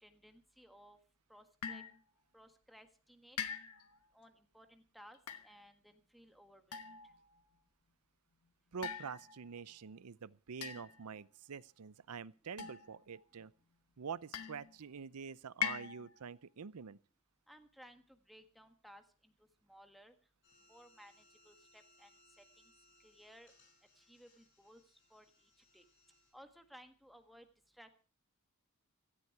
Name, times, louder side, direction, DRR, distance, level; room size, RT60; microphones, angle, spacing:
voice 1, 0.0-1.0 1.3-1.8 2.3-3.4 4.1-6.8 17.5-19.3 19.7-20.1 20.7-21.1 21.4-22.1 23.0-23.5 24.0-24.8 25.1-25.3 25.7-25.8 26.3-27.5 27.7-27.9, equal, ahead, 1.5 m, -59 dB
sound 1, 1.6-2.0 3.4-4.0 5.1-5.5 6.7-7.3 8.8-9.6 10.6-11.2 12.6-13.2 14.3-14.8 15.6-16.2, left 8 dB, 90° left, 1.2 m, -42 dB
voice 2, 8.7-13.5 14.0-17.0, right 6 dB, 85° right, 0.6 m, -46 dB
sound 2, 20.4-26.3, left 1 dB, 55° left, 6.9 m, -69 dB
16.0 x 13.5 x 4.7 m
head